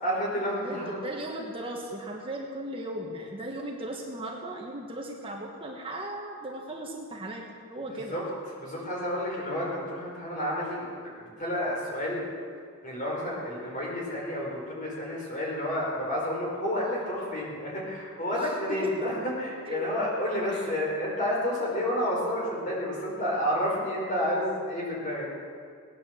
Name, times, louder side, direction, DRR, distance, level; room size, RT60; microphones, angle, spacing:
voice 1, 0.0-1.0 7.9-8.2 8.6-12.3 12.8-19.1 19.4-25.3, equal, 35° left, -4 dB, 5.0 m, -30 dB
voice 2, 0.6-8.2 18.3-18.6 18.8-18.9 19.7-19.9 20.5-20.7, right 1 dB, 25° right, -1 dB, 1.4 m, -37 dB
19.0 x 9.6 x 7.7 m, 2.2 s
head